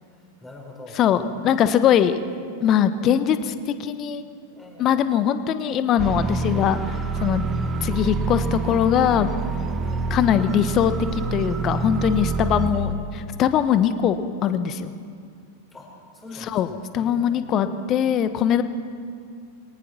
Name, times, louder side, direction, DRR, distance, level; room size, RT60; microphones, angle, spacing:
voice 1, 0.0-1.9 4.5-5.0 9.8-10.1 12.7-13.3 15.7-18.0, left 1 dB, 15° left, -1 dB, 5.8 m, -44 dB
voice 2, 1.0-2.2 2.6-3.5 3.8-4.2 4.8-7.4 7.8-9.3 10.1-13.0 13.4-14.9 16.5-16.7 16.9-18.6, left 9 dB, 35° left, 11 dB, 1.2 m, -21 dB
sound 1, 6.0-12.7, right 4 dB, 25° right, 1.4 m, -27 dB
23.0 x 18.5 x 6.2 m, 2.2 s
figure-of-eight pair, 90°, 0 cm